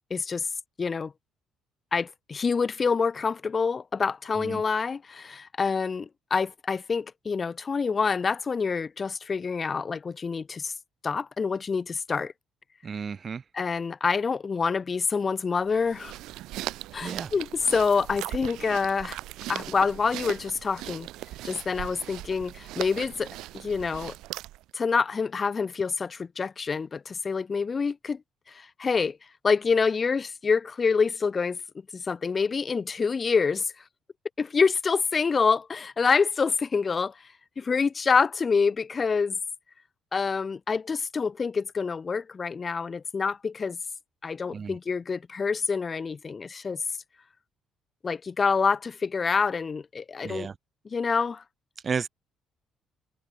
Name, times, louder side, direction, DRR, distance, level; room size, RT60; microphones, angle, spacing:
voice 1, 0.1-0.5 0.8-1.1 1.9-10.7 11.0-12.3 13.5-16.1 16.9-19.2 19.5-21.1 21.4-24.1 24.7-28.2 28.5-29.2 29.4-31.6 31.9-33.7 34.4-37.1 37.6-39.4 40.1-43.8 44.2-46.8 48.0-50.5 50.8-51.4, left 5 dB, 30° left, 0.8 m, -27 dB
voice 2, 12.8-13.4 17.0-17.3 44.5-44.7 50.2-50.5 51.8-52.1, right 6 dB, 35° right, 0.5 m, -32 dB
sound 1, 15.7-24.7, right 16 dB, 85° right, 0.7 m, -39 dB
cardioid pair, 125°, 0 cm